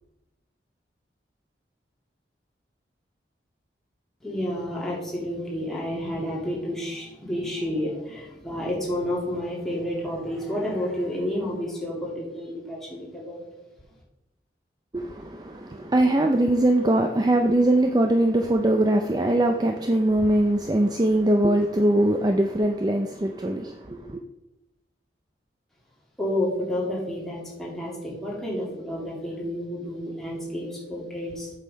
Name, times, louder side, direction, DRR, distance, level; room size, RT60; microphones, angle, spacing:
voice 1, 4.2-13.4 26.2-31.5, left 1 dB, ahead, 2.4 m, -30 dB
voice 2, 14.9-24.2, right 1 dB, 20° right, 0.4 m, -22 dB
8.1 x 5.7 x 5.1 m
head